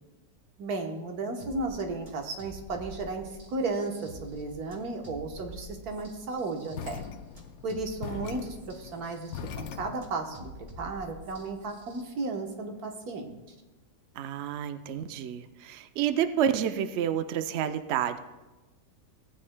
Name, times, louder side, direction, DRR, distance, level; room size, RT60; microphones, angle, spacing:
voice 1, 0.6-7.0 7.6-9.3 9.6-13.4, right 3 dB, 60° right, 3 dB, 1.5 m, -34 dB
sound 1, 1.4-12.0, right 1 dB, 30° right, 1.3 m, -48 dB
sound 2, 6.7-10.2, left 9 dB, 70° left, 0.9 m, -41 dB
voice 2, 14.2-18.2, right 9 dB, 85° right, 9 dB, 0.6 m, -29 dB
17.0 x 9.0 x 2.2 m, 1.1 s
omnidirectional pair, 1.9 m